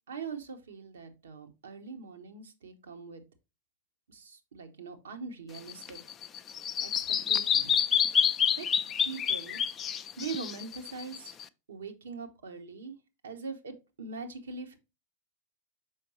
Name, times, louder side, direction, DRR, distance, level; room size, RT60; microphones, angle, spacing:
voice 1, 0.1-3.2 4.1-6.0 6.8-7.8 8.6-8.7 9.0-9.6 10.2-11.3 11.7-12.9 13.2-14.8, right 5 dB, 65° right, 6 dB, 1.1 m, -42 dB
Bird vocalization bird call bird song, 5.5-11.4, left 8 dB, 25° left, 0.4 m, -28 dB
6.3 x 5.2 x 3.1 m, 0.26 s
figure-of-eight pair, 90°, 0 cm